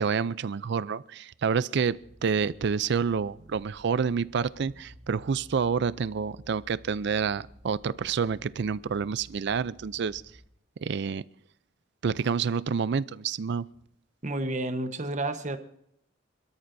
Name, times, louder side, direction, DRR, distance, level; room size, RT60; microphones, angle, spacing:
voice 1, 0.0-10.2 10.8-11.2 12.0-13.7, right 6 dB, 65° right, 18 dB, 0.4 m, -28 dB
sound 1, 1.8-10.4, equal, ahead, 4.3 m, -53 dB
voice 2, 14.2-15.6, right 2 dB, 40° right, 8 dB, 1.1 m, -30 dB
26.5 x 13.0 x 2.7 m, 0.73 s
head